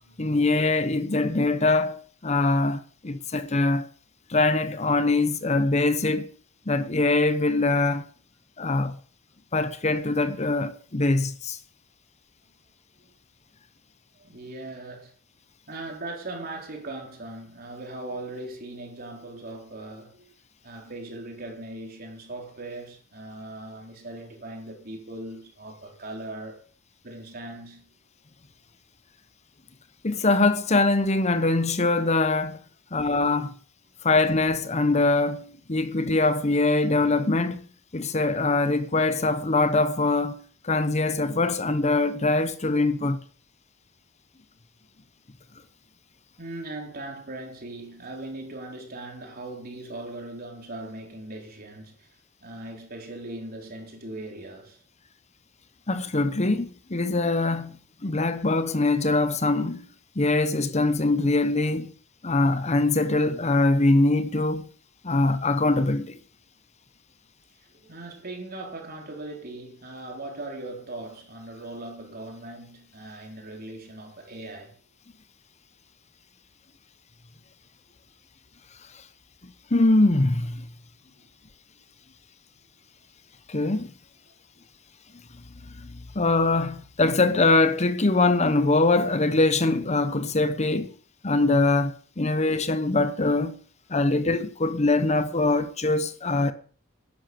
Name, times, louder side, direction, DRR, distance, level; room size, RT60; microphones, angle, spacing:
voice 1, 0.2-3.9 4.3-6.3 6.7-8.0 8.6-9.0 9.5-11.6 30.0-32.6 32.9-33.5 34.0-37.7 37.9-43.2 55.9-59.8 60.2-61.9 62.2-64.7 65.0-66.2 78.9-79.0 79.4-80.7 83.5-83.9 85.7-90.9 91.2-93.6 93.9-96.5, left 2 dB, 35° left, 1.0 m, -23 dB
voice 2, 14.2-15.1 15.7-20.3 20.6-26.7 27.0-27.9 46.4-52.2 52.4-54.8 67.6-74.8 80.9-81.2 84.6-84.7, right 2 dB, 50° right, 4.0 m, -39 dB
12.0 x 10.5 x 6.9 m
head